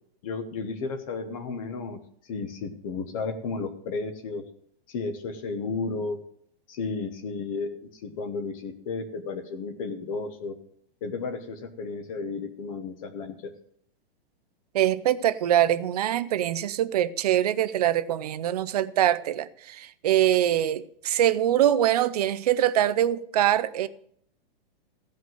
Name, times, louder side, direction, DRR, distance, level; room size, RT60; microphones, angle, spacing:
voice 1, 0.2-4.4 4.9-6.2 6.7-10.5 11.0-13.5, left 4 dB, 35° left, 1.0 m, -33 dB
voice 2, 14.7-23.9, right 12 dB, 40° right, 0.5 m, -23 dB
15.5 x 5.3 x 7.7 m
hypercardioid pair, 170°, 31 cm